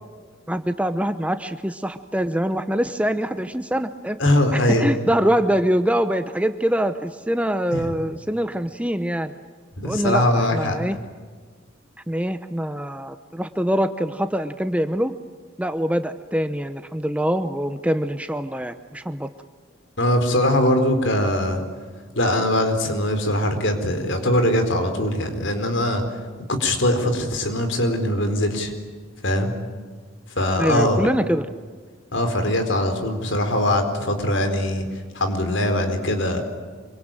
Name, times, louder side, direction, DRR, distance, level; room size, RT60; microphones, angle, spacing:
voice 1, 0.5-4.2 4.5-9.3 9.8-11.0 12.1-15.1 15.6-19.3 30.6-31.5, equal, 5° right, 9 dB, 0.7 m, -24 dB
voice 2, 4.2-4.9 7.7-7.9 9.8-10.8 20.0-21.6 22.1-26.0 26.5-28.7 29.2-29.5 30.4-31.0 32.1-34.9 35.1-36.4, left 1 dB, 65° left, 6 dB, 4.3 m, -21 dB
26.5 x 24.5 x 9.0 m, 1.5 s
head